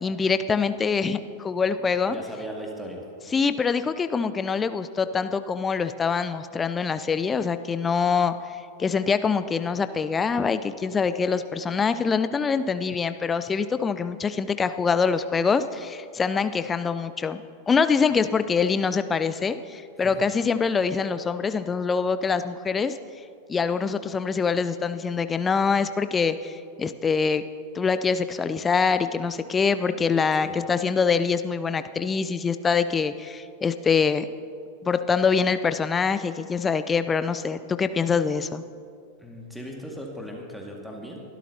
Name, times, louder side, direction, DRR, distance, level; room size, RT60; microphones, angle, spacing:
voice 1, 0.0-2.2 3.3-8.3 8.8-23.0 23.5-27.4 27.7-34.3 34.8-38.6, left 5 dB, 20° left, 11 dB, 0.6 m, -24 dB
voice 2, 2.1-3.1 20.0-20.2 30.4-30.6 39.2-41.2, equal, ahead, -1 dB, 2.1 m, -37 dB
23.5 x 12.5 x 2.9 m, 2.3 s
figure-of-eight pair, 90°, 0 cm